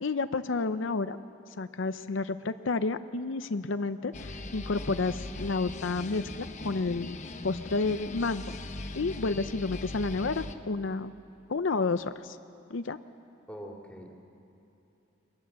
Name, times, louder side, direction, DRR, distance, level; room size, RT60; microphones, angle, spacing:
voice 1, 0.0-1.2 1.6-7.2 7.4-8.5 8.9-11.1 11.5-12.4 12.7-13.0, left 3 dB, 70° left, 10 dB, 0.6 m, -30 dB
sound 1, 4.1-10.6, left 2 dB, 40° left, 1.0 m, -40 dB
voice 2, 13.5-14.2, equal, 5° left, 0 dB, 2.8 m, -43 dB
28.0 x 22.0 x 7.5 m, 3.0 s
head